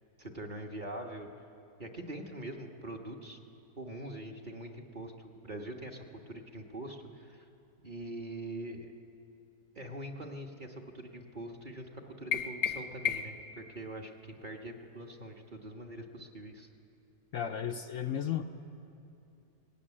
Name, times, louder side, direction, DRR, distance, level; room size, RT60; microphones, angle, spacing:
voice 1, 0.2-1.3 1.8-3.4 3.8-7.4 7.8-8.9 9.7-16.7, right 1 dB, 35° right, 1 dB, 1.3 m, -43 dB
sound 1, 12.3-13.5, left 8 dB, 80° left, 1.4 m, -33 dB
voice 2, 17.3-18.4, left 9 dB, 65° left, 6 dB, 0.9 m, -34 dB
18.0 x 16.0 x 9.9 m, 2.7 s
omnidirectional pair, 1.7 m